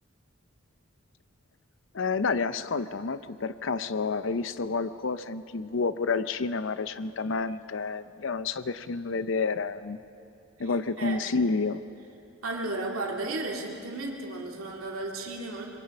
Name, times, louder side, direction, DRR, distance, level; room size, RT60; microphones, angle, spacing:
voice 1, 1.9-10.0 10.6-11.8, left 4 dB, 65° left, 13 dB, 0.6 m, -29 dB
voice 2, 12.4-15.6, right 2 dB, 90° right, -1 dB, 2.4 m, -34 dB
26.0 x 22.5 x 5.3 m, 2.5 s
head